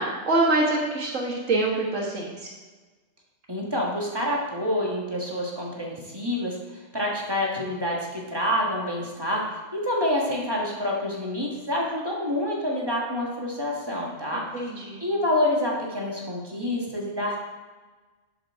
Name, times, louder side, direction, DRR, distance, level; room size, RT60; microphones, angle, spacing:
voice 1, 0.0-2.5 14.3-15.0, right 2 dB, 85° right, -2 dB, 1.9 m, -25 dB
voice 2, 3.5-6.6 6.9-9.4 9.7-14.4 15.0-17.4, left 1 dB, 20° right, -2 dB, 1.4 m, -27 dB
7.7 x 7.1 x 3.6 m, 1.3 s
omnidirectional pair, 1.3 m